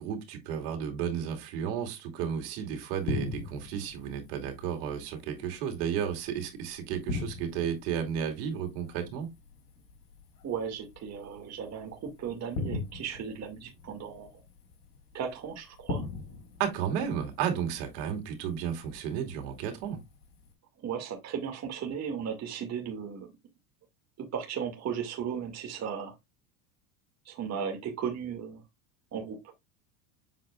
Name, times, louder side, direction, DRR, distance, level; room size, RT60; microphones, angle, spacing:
voice 1, 0.0-9.3 16.6-20.0, right 8 dB, 70° right, 2.6 m, -33 dB
sound 1, 3.0-20.5, left 3 dB, 85° left, 4.0 m, -42 dB
voice 2, 10.4-14.3 15.1-16.1 20.8-23.3 24.2-26.1 27.3-28.6 29.1-29.4, right 7 dB, 30° right, 2.0 m, -36 dB
7.5 x 6.3 x 2.3 m
supercardioid pair, 125°, 50 cm